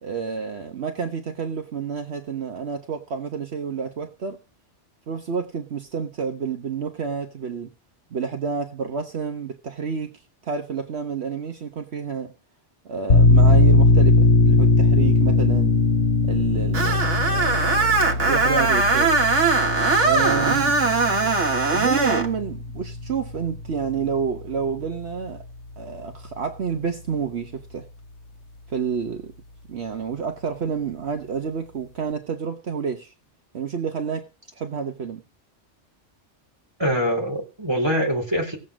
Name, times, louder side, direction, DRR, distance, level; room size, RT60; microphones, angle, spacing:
voice 1, 0.0-4.4 5.1-7.7 8.1-12.3 12.8-15.8 16.2-19.1 20.0-20.8 21.7-25.4 25.8-27.9 28.7-29.3 29.7-33.1 33.5-35.2, right 6 dB, 65° right, 1.3 m, -29 dB
sound 1, 13.1-24.4, left 3 dB, 70° left, 1.9 m, -20 dB
Screech, 16.7-22.3, right 3 dB, 85° right, 1.7 m, -20 dB
voice 2, 36.8-38.6, equal, 20° right, 3.6 m, -24 dB
17.5 x 7.6 x 6.2 m
omnidirectional pair, 1.2 m